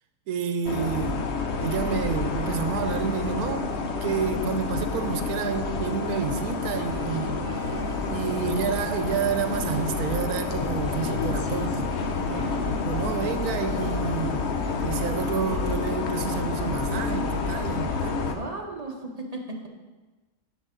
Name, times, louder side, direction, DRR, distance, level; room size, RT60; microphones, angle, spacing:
voice 1, 0.3-1.2 1.6-3.7 4.0-7.4 8.1-11.9 12.6-14.5 14.8-18.4, right 7 dB, 85° right, 1.2 m, -29 dB
sound 1, 0.7-18.4, left 4 dB, 55° left, 0.9 m, -29 dB
sound 2, 6.9-18.2, right 3 dB, 65° right, 1.5 m, -43 dB
sound 3, 7.5-15.4, left 1 dB, 90° left, 1.8 m, -41 dB
voice 2, 12.1-12.6 18.2-19.7, right 2 dB, 30° right, 1.2 m, -36 dB
10.5 x 7.8 x 3.8 m
omnidirectional pair, 1.5 m